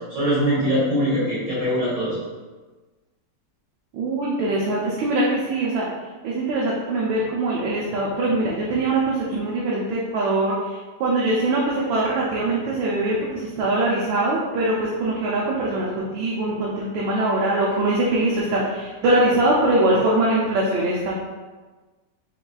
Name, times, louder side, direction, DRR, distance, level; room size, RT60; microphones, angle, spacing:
voice 1, 0.1-2.1, equal, 70° right, -11 dB, 2.4 m, -22 dB
voice 2, 3.9-5.9 6.2-21.2, right 2 dB, 90° right, -4 dB, 1.5 m, -22 dB
4.6 x 4.0 x 2.3 m, 1.3 s
omnidirectional pair, 2.0 m